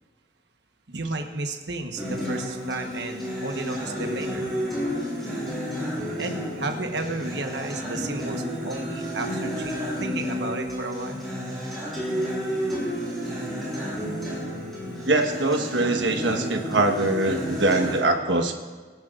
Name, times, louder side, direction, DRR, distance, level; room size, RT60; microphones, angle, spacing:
voice 1, 0.9-4.5 6.2-11.2, right 2 dB, 70° right, 4 dB, 1.2 m, -33 dB
Acoustic guitar, 2.0-18.0, equal, ahead, 4.6 m, -31 dB
voice 2, 15.1-18.5, right 2 dB, 90° right, 4 dB, 1.3 m, -23 dB
23.0 x 10.5 x 2.5 m, 1.4 s
head